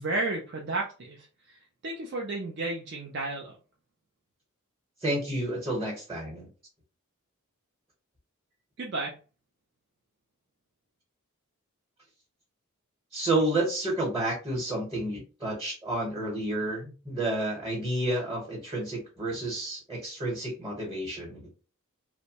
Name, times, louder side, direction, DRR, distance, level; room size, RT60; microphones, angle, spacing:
voice 1, 0.0-3.6 8.8-9.2, right 2 dB, 50° right, -1 dB, 0.5 m, -33 dB
voice 2, 5.0-6.5 13.1-21.5, right 1 dB, 20° right, -1 dB, 0.9 m, -30 dB
2.6 x 2.1 x 2.8 m, 0.34 s
head